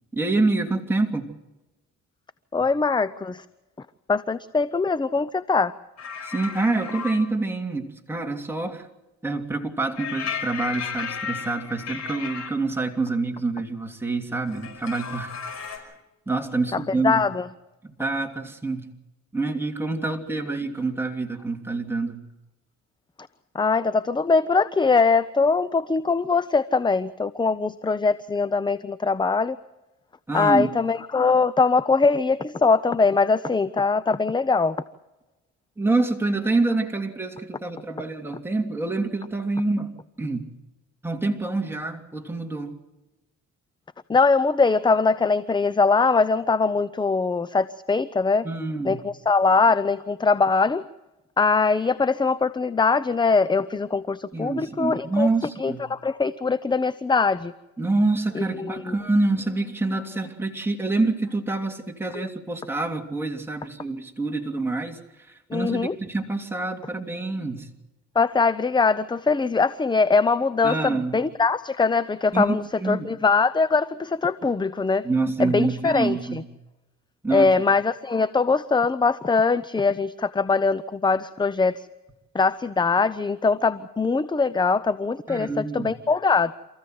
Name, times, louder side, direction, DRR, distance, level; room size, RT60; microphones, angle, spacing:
voice 1, 0.1-1.2 6.2-8.9 9.2-15.9 16.3-17.2 17.8-18.9 19.3-22.2 30.3-30.7 35.8-39.9 40.2-40.5 41.0-42.8 48.4-49.0 54.3-55.8 57.8-67.7 70.6-71.2 72.3-72.4 72.8-73.1 75.0-76.4 77.2-77.5 85.3-85.9, right 3 dB, 5° right, 2 dB, 3.0 m, -26 dB
voice 2, 2.5-3.4 4.1-5.7 16.7-17.5 23.5-29.6 30.3-34.8 44.1-48.5 48.8-50.8 51.4-55.3 55.6-57.5 58.4-58.8 62.2-62.3 65.5-66.0 68.1-75.1 75.4-76.4 77.3-81.9 82.3-86.5, left 4 dB, 15° left, 15 dB, 0.7 m, -22 dB
sound 1, 6.0-7.2 10.0-12.5 14.5-15.8, left 6 dB, 60° left, 5.6 m, -34 dB
27.5 x 15.0 x 7.9 m, 1.0 s
cardioid pair, 90°, 30 cm